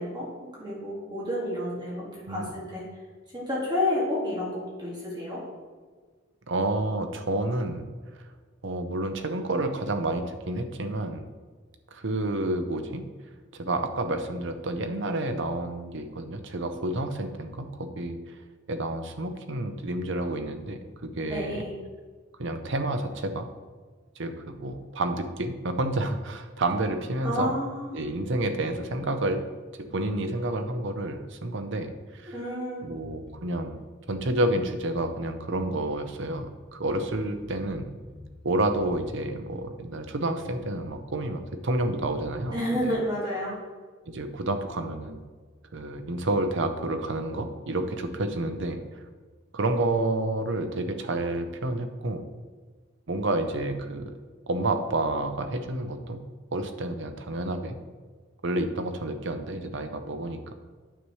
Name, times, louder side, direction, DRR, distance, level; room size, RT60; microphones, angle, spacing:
voice 1, 0.0-2.8 3.3-5.4 21.3-21.7 27.2-28.0 32.3-32.8 42.5-43.6, left 1 dB, 20° right, -7 dB, 2.1 m, -30 dB
voice 2, 6.5-7.8 8.6-11.2 11.9-13.0 13.5-18.2 18.7-21.6 22.4-23.5 24.2-27.5 27.9-29.4 29.8-32.4 32.8-33.8 34.1-37.9 38.4-42.9 44.1-45.2 45.7-48.8 49.5-52.3 53.1-54.1 54.5-56.2 56.5-57.8 58.4-60.5, right 2 dB, 60° right, 7 dB, 0.7 m, -29 dB
sound 1, 32.9-33.5 34.0-34.8 35.6-36.6 36.9-38.4 38.7-39.7 40.4-42.5, equal, 5° left, 0.8 m, -47 dB
9.2 x 6.8 x 3.2 m, 1.5 s
head